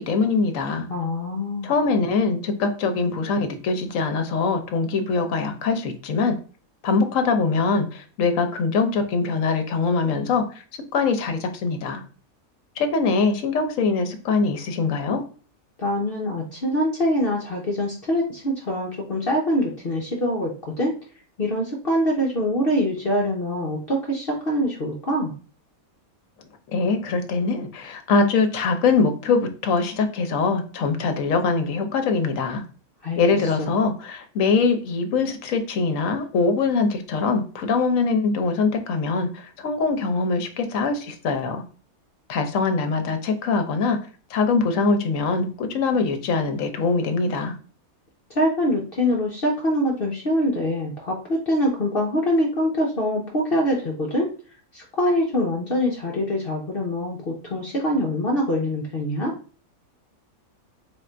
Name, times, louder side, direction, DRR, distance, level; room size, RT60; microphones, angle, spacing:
voice 1, 0.0-0.9 1.6-6.4 6.8-10.4 10.9-12.0 12.8-15.2 26.7-32.6 33.2-41.6 42.3-44.0 44.3-47.5, left 4 dB, 65° left, 7 dB, 1.1 m, -23 dB
voice 2, 0.9-1.7 15.8-20.5 20.8-20.9 21.4-25.3 33.0-33.2 33.6-33.7 48.3-54.3 54.7-59.3, equal, 45° left, -2 dB, 0.9 m, -24 dB
3.5 x 2.5 x 4.3 m, 0.39 s
omnidirectional pair, 1.5 m